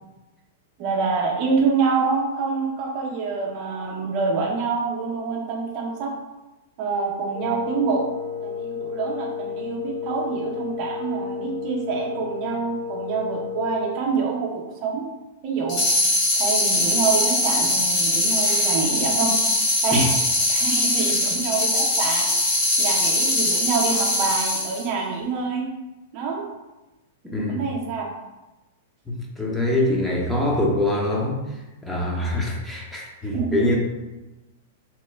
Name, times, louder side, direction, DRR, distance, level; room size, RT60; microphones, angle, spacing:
voice 1, 0.8-6.1 6.8-8.1 8.4-15.1 15.4-15.8 16.4-19.4 19.8-20.2 20.5-25.7 26.1-26.5 27.5-28.1 33.3-33.7, right 4 dB, 40° right, -1 dB, 0.6 m, -26 dB
Wind instrument woodwind instrument, 7.3-14.1, left 7 dB, 50° left, 0.6 m, -32 dB
sound 1, 15.7-24.9, left 1 dB, 30° left, 1.4 m, -21 dB
voice 2, 18.4-18.7 19.9-20.0 21.0-21.2 27.2-27.6 29.1-31.4 31.8-33.8, left 1 dB, 5° left, -4 dB, 0.7 m, -24 dB
3.0 x 2.1 x 3.3 m, 1.0 s
figure-of-eight pair, 100°, 0 cm